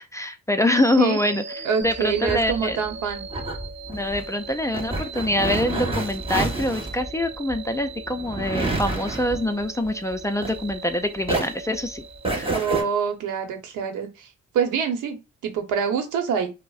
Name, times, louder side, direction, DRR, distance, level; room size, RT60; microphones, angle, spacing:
voice 1, 0.0-2.8 3.9-12.0 12.3-12.6, left 1 dB, 10° left, 0.4 m, -25 dB
sound 1, 0.7-12.8, right 3 dB, 40° right, 0.6 m, -39 dB
voice 2, 1.6-3.3 12.5-14.3 14.5-15.2 15.4-16.5, right 7 dB, 85° right, 0.9 m, -25 dB
sound 2, 1.8-10.9 11.2-12.8, right 2 dB, 20° right, 1.1 m, -29 dB
5.0 x 2.1 x 2.4 m
cardioid pair, 90°, 30 cm